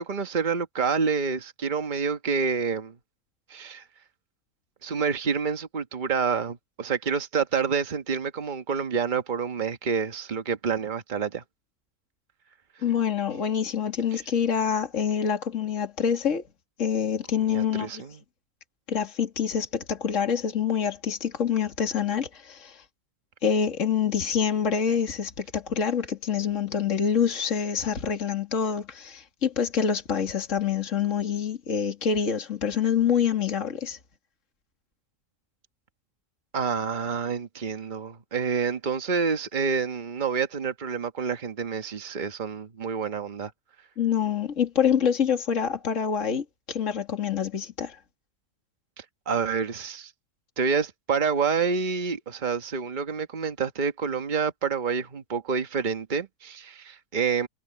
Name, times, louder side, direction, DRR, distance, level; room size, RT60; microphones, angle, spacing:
voice 1, 0.0-2.9 3.5-3.8 4.8-11.4 17.5-18.2 36.5-43.5 49.0-50.1 50.6-57.5, right 5 dB, 35° right, 1.3 m, -28 dB
voice 2, 12.8-16.4 16.8-18.0 18.9-22.8 23.4-34.0 44.0-48.0, left 7 dB, 55° left, 2.6 m, -26 dB
omnidirectional pair, 1.6 m